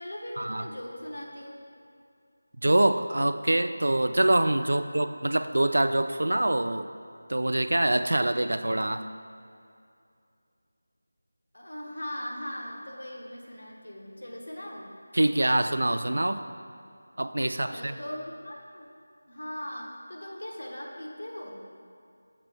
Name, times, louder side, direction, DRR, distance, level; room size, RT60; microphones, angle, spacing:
voice 1, 0.0-1.6 4.6-4.9 11.5-14.9 17.4-18.9 19.3-21.6, left 1 dB, 80° left, -1 dB, 1.3 m, -39 dB
voice 2, 2.6-6.9 7.3-9.1 15.1-16.5 17.2-18.0, right 1 dB, 85° right, 9 dB, 0.3 m, -25 dB
6.7 x 3.5 x 6.1 m, 2.4 s
figure-of-eight pair, 180°, 0 cm